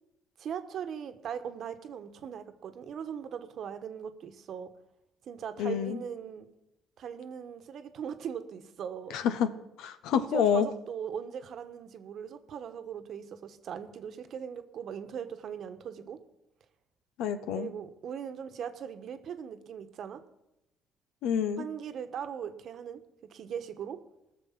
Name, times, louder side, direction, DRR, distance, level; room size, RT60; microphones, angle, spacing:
voice 1, 0.4-4.7 5.3-6.5 7.0-9.2 10.1-16.2 17.5-20.2 21.6-23.0 23.3-24.0, right 8 dB, 60° right, 9 dB, 1.2 m, -39 dB
voice 2, 5.6-6.0 9.1-9.5 9.8-10.7 17.2-17.7 21.2-21.7, left 8 dB, 85° left, 11 dB, 1.0 m, -28 dB
18.5 x 6.8 x 5.9 m, 0.89 s
cardioid pair, 95°, 0 cm